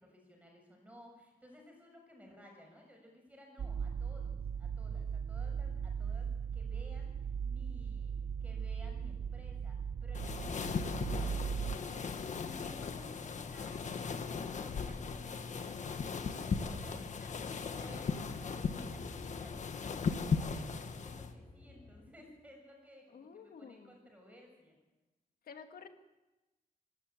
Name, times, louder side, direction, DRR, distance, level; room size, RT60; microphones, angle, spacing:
voice 1, 0.0-7.1 7.4-8.1 8.4-24.8, left 1 dB, 10° right, 1 dB, 7.0 m, -57 dB
sound 1, 3.6-11.8, right 7 dB, 55° right, 0.9 m, -38 dB
sound 2, 10.1-21.3, left 5 dB, 55° left, 1.5 m, -38 dB
sound 3, 16.4-22.0, equal, 30° left, 4.3 m, -55 dB
voice 2, 17.0-18.0 23.1-23.9 25.4-25.9, left 6 dB, 80° left, 7 dB, 2.0 m, -52 dB
25.0 x 13.0 x 8.9 m, 1.1 s
wide cardioid pair, 160°, 15 cm